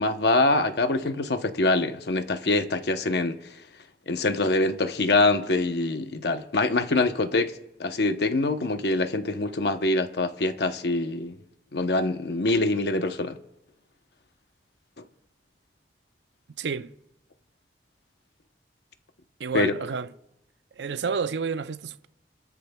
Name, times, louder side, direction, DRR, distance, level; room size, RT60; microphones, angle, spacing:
voice 1, 0.0-3.4 4.1-7.5 7.8-11.4 11.7-13.4 19.5-19.7, left 2 dB, 70° left, 0.8 m, -24 dB
voice 2, 16.6-16.9 19.4-20.1 20.8-22.1, right 5 dB, 80° right, 0.5 m, -30 dB
29.0 x 13.5 x 2.3 m
head